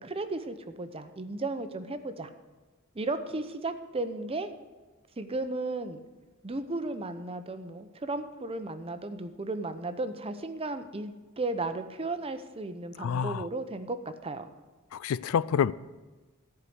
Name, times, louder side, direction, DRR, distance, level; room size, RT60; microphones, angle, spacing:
voice 1, 0.0-2.3 2.9-4.5 5.2-6.0 6.4-14.0 14.2-14.5, right 2 dB, 25° right, 0.7 m, -34 dB
voice 2, 13.0-13.5 14.9-15.7, left 7 dB, 80° left, 0.3 m, -27 dB
14.0 x 4.8 x 7.9 m
head